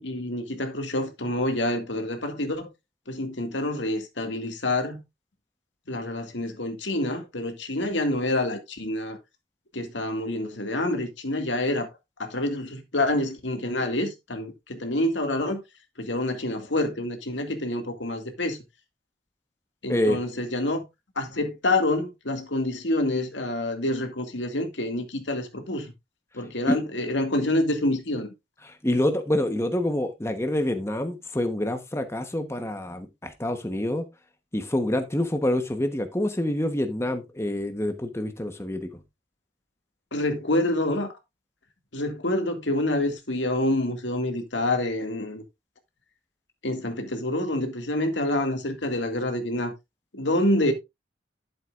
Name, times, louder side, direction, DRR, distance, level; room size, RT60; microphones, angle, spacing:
voice 1, 0.0-2.7 3.1-5.0 5.9-9.2 9.7-11.9 12.2-15.6 16.0-18.6 19.8-20.8 21.2-25.9 26.3-28.3 40.1-41.1 41.9-45.4 46.6-49.7 50.1-50.7, left 1 dB, 80° left, 2.2 m, -27 dB
voice 2, 28.6-34.1 34.5-39.0, left 1 dB, 15° left, 1.1 m, -27 dB
11.5 x 7.7 x 2.5 m
head